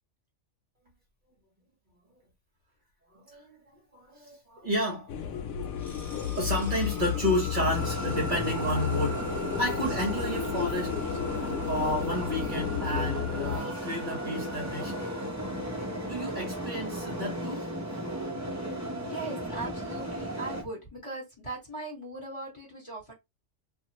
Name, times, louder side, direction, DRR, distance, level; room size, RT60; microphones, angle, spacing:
voice 1, 3.1-3.6 3.9-5.5 6.4-9.2 9.6-10.9 11.6-14.9 16.1-17.7, equal, 45° right, 1.2 m, -31 dB
sound 1, 5.1-13.6, left 9 dB, 90° left, 0.9 m, -33 dB
sound 2, 5.4-16.2, equal, ahead, 1.1 m, -44 dB
sound 3, 7.6-20.6, right 1 dB, 15° right, 0.8 m, -35 dB
voice 2, 19.0-23.1, right 2 dB, 25° left, 1.6 m, -39 dB
2.6 x 2.4 x 2.9 m
omnidirectional pair, 1.2 m